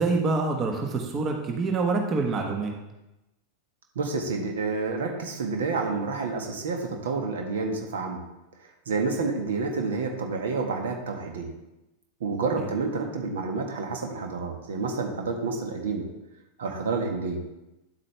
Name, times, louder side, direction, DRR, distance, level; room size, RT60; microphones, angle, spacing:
voice 1, 0.0-2.7 12.6-12.7, right 3 dB, 25° right, 2 dB, 1.3 m, -26 dB
voice 2, 3.9-8.2 8.8-11.5 12.2-16.0 16.6-17.4, right 4 dB, 60° right, 3 dB, 1.5 m, -29 dB
9.9 x 8.3 x 3.4 m, 0.95 s
figure-of-eight pair, 90°, 0 cm